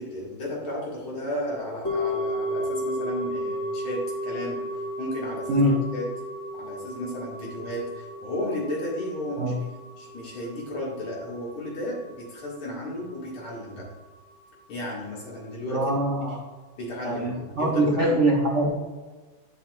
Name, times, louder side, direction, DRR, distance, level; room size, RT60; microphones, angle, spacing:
voice 1, 0.0-4.7 5.0-6.1 6.5-9.6 10.0-13.9 14.7-16.0 16.3-16.4 16.8-18.2, left 1 dB, 85° left, -4 dB, 2.9 m, -34 dB
bell-bowl G-ish, 1.9-12.1 12.4-12.5, equal, 40° left, 2.6 m, -33 dB
voice 2, 15.7-16.4 17.0-18.8, right 1 dB, 40° right, -2 dB, 1.4 m, -23 dB
11.0 x 5.6 x 2.4 m, 1.3 s
omnidirectional pair, 2.2 m